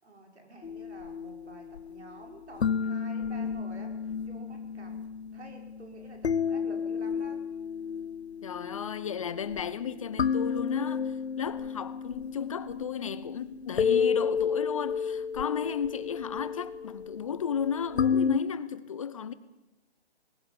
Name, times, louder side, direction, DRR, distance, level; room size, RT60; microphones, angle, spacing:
voice 1, 0.0-4.9 5.3-7.4, right 2 dB, 80° right, 6.2 m, -49 dB
sound 1, 0.6-18.4, left 6 dB, 75° left, 1.0 m, -32 dB
voice 2, 8.4-19.3, left 7 dB, 30° left, 0.8 m, -34 dB
19.5 x 16.5 x 8.7 m
hypercardioid pair, 160°, 33 cm